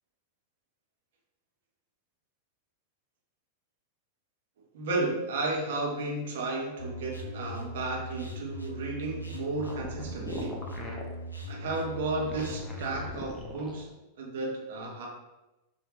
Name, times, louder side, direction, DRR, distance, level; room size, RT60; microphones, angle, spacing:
voice 1, 4.7-10.6 11.5-13.9 14.2-15.1, right 2 dB, 55° right, -1 dB, 1.1 m, -33 dB
sound 1, 6.8-13.1, equal, 85° left, 0.5 m, -39 dB
sound 2, 9.5-11.1 12.1-13.9, left 1 dB, 15° left, 0.8 m, -40 dB
4.7 x 2.8 x 3.0 m, 0.99 s
figure-of-eight pair, 90°, 0 cm